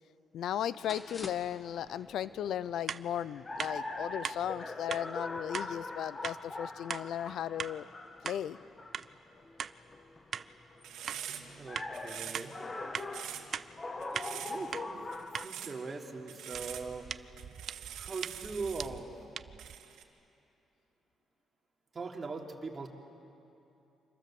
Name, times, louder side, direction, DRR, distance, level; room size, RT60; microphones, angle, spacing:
voice 1, 0.3-7.9 8.2-8.6, left 10 dB, 75° left, 17 dB, 0.5 m, -36 dB
sound 1, 0.8-15.5, left 2 dB, 30° left, 1.7 m, -43 dB
sound 2, 2.9-3.0 3.6-3.7 4.2-4.4 4.9-5.0 5.5-5.7 6.2-6.4 6.9-7.0 7.6-7.7 8.2-8.4 8.9-9.1 9.6-9.7 10.3-10.5 11.1-11.2 11.7-11.9 12.3-12.5 12.9-13.1 13.5-13.7 14.1-14.3 14.7-14.9 15.3-15.5 16.5-19.8, right 7 dB, 50° right, 0.6 m, -40 dB
sound 3, 10.8-11.6 11.9-12.6 12.9-13.5 14.0-14.6 15.1-15.8 16.3-16.9 17.4-19.0 19.6-20.0, right 10 dB, 85° right, 2.2 m, -44 dB
voice 2, 11.6-12.6 14.3-15.2 15.4-17.2 18.0-19.1 21.9-22.9, right 4 dB, 35° right, 1 dB, 3.3 m, -41 dB
28.5 x 25.5 x 7.7 m, 2.8 s
cardioid pair, 90°, 0 cm